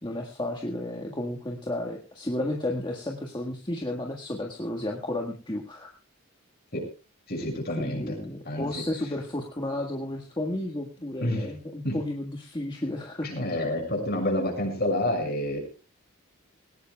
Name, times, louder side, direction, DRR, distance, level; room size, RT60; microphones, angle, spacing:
voice 1, 0.0-5.9 7.8-13.5, left 1 dB, 20° left, 1 dB, 1.6 m, -32 dB
voice 2, 7.3-8.1 8.4-8.8 11.2-11.5 11.8-12.0 13.2-15.6, left 1 dB, 45° left, 3 dB, 6.3 m, -28 dB
20.0 x 18.0 x 2.3 m, 0.35 s
head